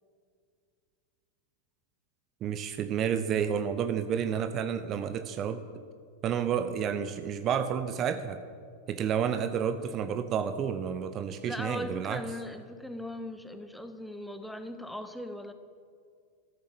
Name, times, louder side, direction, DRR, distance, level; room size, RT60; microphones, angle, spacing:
voice 1, 2.4-5.6 6.2-8.4 8.9-12.2, right 8 dB, 30° right, 11 dB, 0.7 m, -30 dB
voice 2, 11.4-15.5, left 1 dB, 5° left, 9 dB, 1.0 m, -39 dB
14.0 x 10.5 x 7.1 m, 2.3 s
figure-of-eight pair, 90°, 0 cm